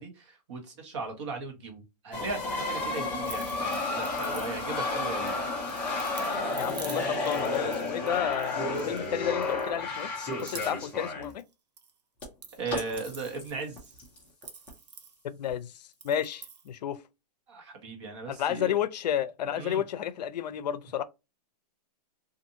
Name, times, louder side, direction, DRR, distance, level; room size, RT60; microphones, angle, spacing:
voice 1, 0.0-5.4 5.8-6.0 12.6-13.9 17.5-18.8 19.6-19.8, right 4 dB, 45° right, 1.1 m, -37 dB
sound 1, 2.1-11.3 12.2-12.3 12.7-14.7 15.5-15.6, left 3 dB, 5° left, 0.3 m, -32 dB
sound 2, 3.2-4.9 5.3-9.1 9.4-10.0 10.3-11.9 12.2-15.5 15.9-16.7, right 6 dB, 90° right, 0.9 m, -48 dB
voice 2, 6.5-11.4 15.2-17.0 18.3-21.0, left 9 dB, 85° left, 0.5 m, -31 dB
2.6 x 2.5 x 2.5 m
hypercardioid pair, 170°, 21 cm